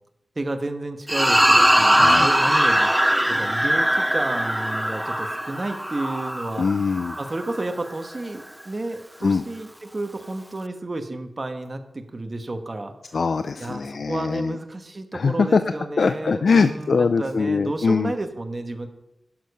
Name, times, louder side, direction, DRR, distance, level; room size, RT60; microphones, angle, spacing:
voice 1, 0.3-6.7 7.2-12.9 13.6-18.9, right 2 dB, 40° right, 6 dB, 1.2 m, -31 dB
sound 1, 1.1-7.6, equal, 5° right, 0.3 m, -20 dB
voice 2, 1.9-2.3 6.6-7.2 9.2-9.4 13.1-14.6 15.1-15.6 16.0-18.1, left 5 dB, 75° left, 10 dB, 0.4 m, -22 dB
12.0 x 6.6 x 5.4 m, 0.88 s
wide cardioid pair, 65°, 0 cm